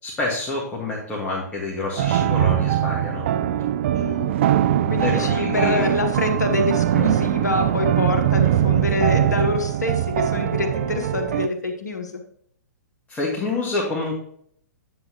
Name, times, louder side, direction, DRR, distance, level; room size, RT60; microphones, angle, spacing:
voice 1, 0.0-3.2 5.0-5.9 13.1-14.1, left 3 dB, 15° left, -4 dB, 1.7 m, -27 dB
sound 1, 2.0-11.5, right 11 dB, 45° right, 0.4 m, -21 dB
voice 2, 3.9-4.3 4.9-12.1, left 3 dB, 70° left, 4 dB, 1.2 m, -26 dB
9.3 x 7.8 x 3.0 m, 0.65 s
figure-of-eight pair, 115°, 10 cm